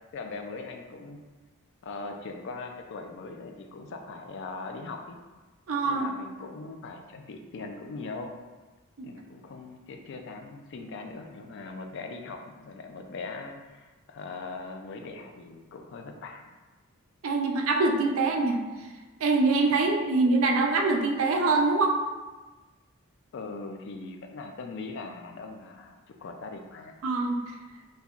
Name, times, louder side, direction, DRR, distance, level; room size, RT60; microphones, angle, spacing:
voice 1, 0.1-1.2 1.8-5.2 5.8-8.3 9.0-16.5 23.3-27.0, left 3 dB, 55° left, 4 dB, 0.3 m, -40 dB
voice 2, 5.7-6.1 9.0-9.1 17.2-18.6 19.2-21.9 27.0-27.4, right 3 dB, 65° right, 2 dB, 0.5 m, -24 dB
5.3 x 2.2 x 2.3 m, 1.2 s
head